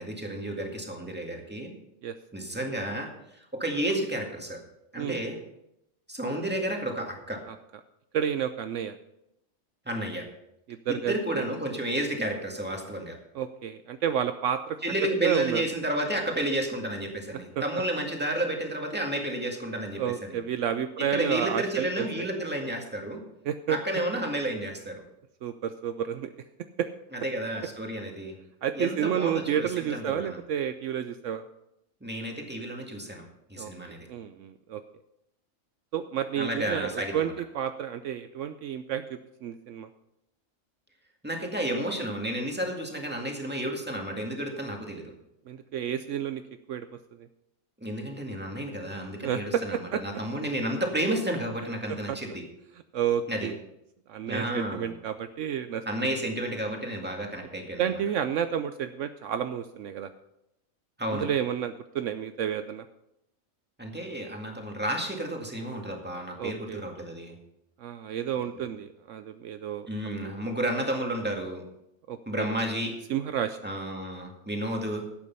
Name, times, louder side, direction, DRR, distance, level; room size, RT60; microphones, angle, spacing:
voice 1, 0.0-1.7 2.3-4.6 4.9-5.4 6.1-7.4 9.9-10.2 11.1-13.2 14.8-20.4 21.1-23.2 23.7-25.0 27.1-28.3 28.8-30.4 32.0-33.2 33.5-34.1 36.4-37.3 41.2-45.1 47.8-52.4 53.3-53.5 54.3-54.9 55.9-57.9 61.0-61.3 63.8-67.3 69.9-71.6 72.3-72.9 73.6-75.1, right 1 dB, 10° right, 1 dB, 1.9 m, -31 dB
voice 2, 8.1-9.0 10.7-11.5 13.3-14.8 15.2-15.6 17.6-17.7 20.0-22.3 23.5-23.8 25.4-26.3 26.8-26.9 28.6-31.5 33.6-33.7 34.1-34.8 35.9-39.9 45.5-46.4 46.7-47.3 49.2-50.0 52.1-52.2 52.9-53.5 54.1-55.8 57.8-60.1 61.1-62.8 66.4-66.8 67.8-70.1 72.1-72.6 73.1-73.6, right 9 dB, 70° right, 10 dB, 0.9 m, -30 dB
11.5 x 8.4 x 5.5 m, 0.82 s
omnidirectional pair, 1.4 m